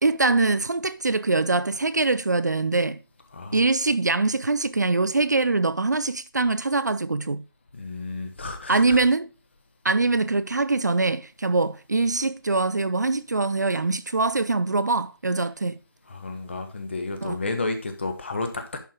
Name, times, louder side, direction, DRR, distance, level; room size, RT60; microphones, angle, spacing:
voice 1, 0.0-3.0 3.5-7.4 8.7-9.3 9.8-15.8 17.2-17.4, right 3 dB, 50° right, 0.5 m, -23 dB
voice 2, 7.7-9.0 16.1-18.8, left 3 dB, 30° left, 1.3 m, -31 dB
10.5 x 4.7 x 4.9 m
figure-of-eight pair, 165°, 12 cm